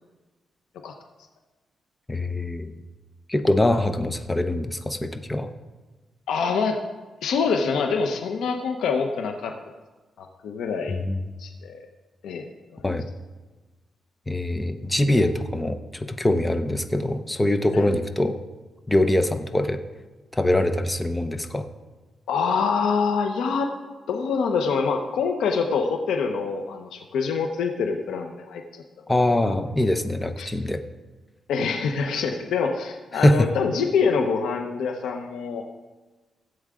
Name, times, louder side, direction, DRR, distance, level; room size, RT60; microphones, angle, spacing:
voice 1, 2.1-2.8 3.3-5.5 10.9-11.3 12.8-13.1 14.3-18.4 18.9-19.8 20.3-21.7 29.1-30.8 33.2-33.5, left 1 dB, 10° left, 8 dB, 0.8 m, -23 dB
voice 2, 6.3-6.8 7.2-9.5 10.2-11.0 11.4-11.8 12.2-12.8 17.7-17.9 22.3-23.7 24.1-28.8 29.5-29.6 30.4-30.5 31.5-35.7, left 5 dB, 90° left, 4 dB, 0.9 m, -25 dB
16.5 x 8.0 x 3.7 m, 1.2 s
cardioid pair, 110°, 0 cm